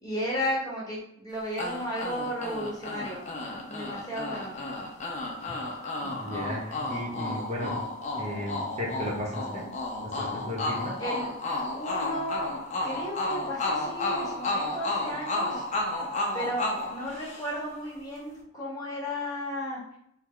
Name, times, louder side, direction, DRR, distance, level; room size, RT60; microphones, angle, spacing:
voice 1, 0.0-3.2 3.6-4.5 11.0-11.3 11.7-12.5 12.8-15.6 16.3-19.8, equal, 20° left, -5 dB, 1.0 m, -34 dB
sound 1, 1.6-17.8, left 2 dB, 35° left, 0.5 m, -32 dB
voice 2, 6.0-7.7 8.1-9.6 10.1-10.9, left 1 dB, 30° right, -3 dB, 0.9 m, -35 dB
3.2 x 2.2 x 3.6 m, 0.73 s
head